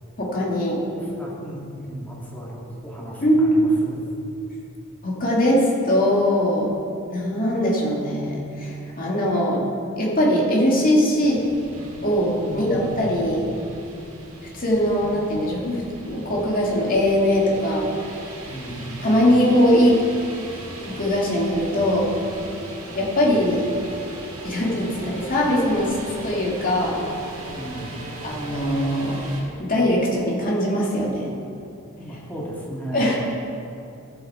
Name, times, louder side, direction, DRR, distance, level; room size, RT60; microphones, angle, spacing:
voice 1, 0.2-0.8 3.2-3.8 5.0-6.7 7.1-9.6 10.0-11.5 12.0-13.4 14.5-15.8 16.1-17.9 19.0-20.0 21.0-22.1 22.9-23.7 24.4-26.0 26.2-27.0 28.2-29.2 29.6-31.3 32.9-33.2, equal, 40° left, -4 dB, 2.3 m, -21 dB
voice 2, 0.9-4.0 12.4-13.0 18.4-18.8 27.5-28.0 32.0-33.1, equal, 10° left, -5 dB, 2.2 m, -35 dB
sound 1, 11.2-29.4, right 1 dB, 85° right, 2.4 m, -37 dB
14.0 x 8.2 x 4.3 m, 2.6 s
head